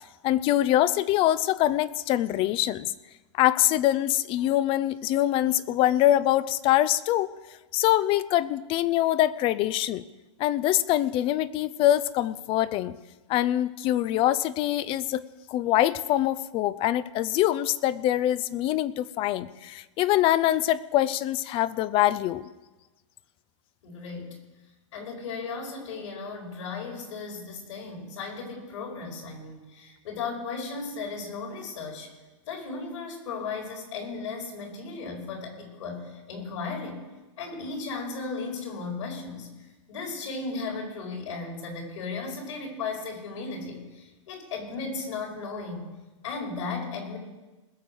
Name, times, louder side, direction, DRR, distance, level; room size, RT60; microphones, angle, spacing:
voice 1, 0.2-2.9 3.3-7.3 7.7-10.0 10.4-13.0 13.3-15.2 15.5-22.5, left 13 dB, 35° left, 17 dB, 0.6 m, -24 dB
voice 2, 23.8-24.4 24.9-32.1 32.5-37.0 37.4-45.9 46.2-47.2, left 4 dB, 70° left, 0 dB, 5.1 m, -36 dB
20.5 x 7.0 x 6.3 m, 1.1 s
hypercardioid pair, 125°, 16 cm